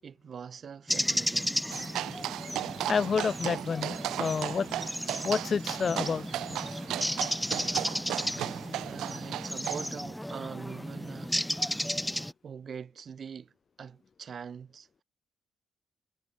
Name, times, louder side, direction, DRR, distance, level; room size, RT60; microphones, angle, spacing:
voice 1, 0.0-1.6 7.3-7.6 8.8-13.5 13.8-15.0, right 7 dB, 50° right, 7.6 m, -44 dB
sound 1, 0.9-12.3, equal, 5° left, 2.3 m, -34 dB
sound 2, 1.7-9.9, right 13 dB, 85° right, 0.6 m, -36 dB
voice 2, 2.9-4.7 5.2-6.2, left 6 dB, 40° left, 0.6 m, -29 dB
cardioid pair, 90°, 0 cm